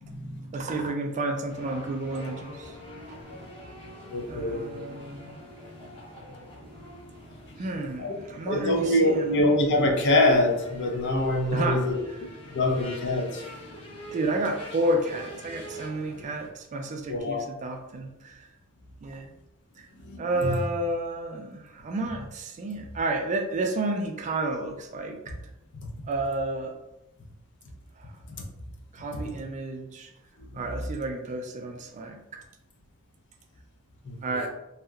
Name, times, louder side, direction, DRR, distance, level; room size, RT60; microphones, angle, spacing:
voice 1, 0.0-0.5 4.1-4.8 8.0-8.2 8.5-12.0 12.5-13.4 17.1-17.4 20.0-20.5 34.0-34.2, left 1 dB, 55° left, 2 dB, 0.5 m, -24 dB
voice 2, 0.5-2.8 4.3-5.5 7.6-9.4 11.5-12.2 14.1-18.5 19.0-19.3 19.8-19.9 20.2-25.3 26.1-26.7 28.0-28.2 28.9-30.1 30.5-32.4 34.2-34.5, right 2 dB, 35° right, 4 dB, 0.3 m, -31 dB
sound 1, 1.5-16.5, equal, 25° left, 0.8 m, -45 dB
2.8 x 2.3 x 2.3 m, 0.90 s
head